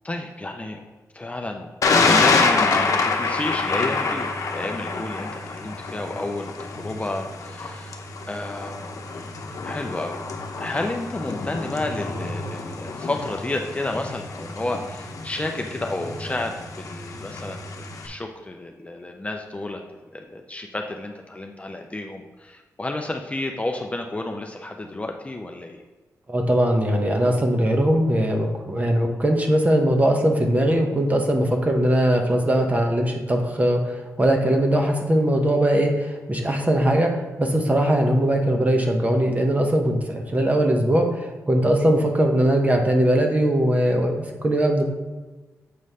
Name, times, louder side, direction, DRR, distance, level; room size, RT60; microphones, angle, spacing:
voice 1, 0.0-0.8 1.1-1.7 2.0-7.9 8.3-9.3 9.6-10.2 10.6-19.8 20.1-25.8 34.7-35.0, left 2 dB, 20° left, 3 dB, 0.6 m, -31 dB
Thunder, 1.8-18.1, left 4 dB, 65° left, 0.9 m, -27 dB
voice 2, 26.3-44.9, right 1 dB, 25° right, 3 dB, 1.1 m, -20 dB
7.6 x 3.1 x 5.6 m, 1.3 s
cardioid pair, 80°, 6 cm